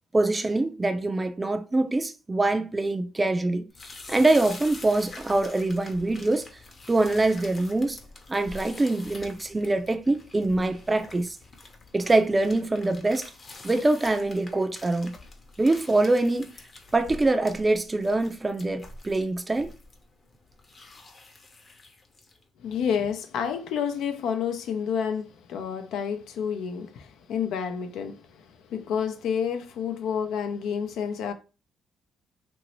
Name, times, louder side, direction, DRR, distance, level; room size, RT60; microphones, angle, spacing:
voice 1, 0.1-3.6 4.1-6.4 6.9-8.0 8.3-11.4 11.9-13.3 13.6-15.1 15.6-16.5 16.9-19.7, right 2 dB, 20° right, 0.4 m, -24 dB
sound 1, 3.7-22.4, left 3 dB, 35° left, 0.7 m, -46 dB
voice 2, 22.6-31.3, left 7 dB, 85° left, 0.5 m, -29 dB
3.0 x 2.6 x 3.0 m
cardioid pair, 90°, 0 cm